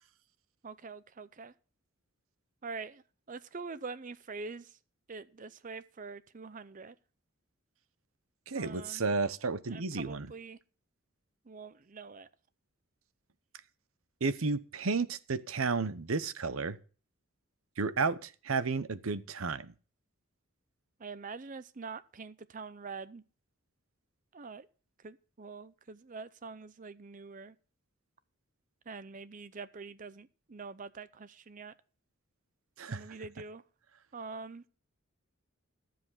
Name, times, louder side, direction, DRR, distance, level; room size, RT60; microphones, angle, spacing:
voice 1, 0.6-1.5 2.6-4.8 5.1-7.0 8.5-9.0 9.7-10.6 11.5-12.3 21.0-23.2 24.3-24.7 25.0-27.6 28.9-31.7 32.9-33.6 34.1-34.6, right 4 dB, 40° right, 0.5 m, -45 dB
voice 2, 8.5-10.3 14.2-16.8 17.8-19.7 32.8-33.0, right 4 dB, 80° right, 0.9 m, -32 dB
13.5 x 7.6 x 5.6 m
head